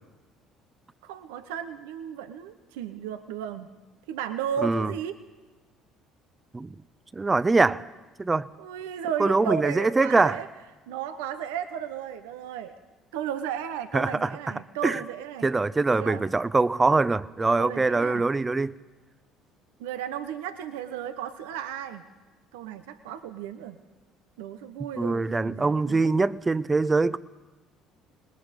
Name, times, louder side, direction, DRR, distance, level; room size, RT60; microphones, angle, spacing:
voice 1, 1.0-3.7 4.1-5.2 8.6-10.5 10.9-12.8 13.1-15.5 16.0-16.3 17.6-18.2 19.8-22.0 22.5-23.8 24.4-26.1, right 9 dB, 80° right, 10 dB, 0.9 m, -34 dB
voice 2, 7.1-7.8 8.2-8.5 9.2-10.4 13.9-14.4 14.8-15.0 15.4-18.7 25.0-27.2, right 3 dB, 25° right, 17 dB, 0.8 m, -23 dB
26.5 x 20.5 x 5.3 m, 1.2 s
hypercardioid pair, 65°, 0 cm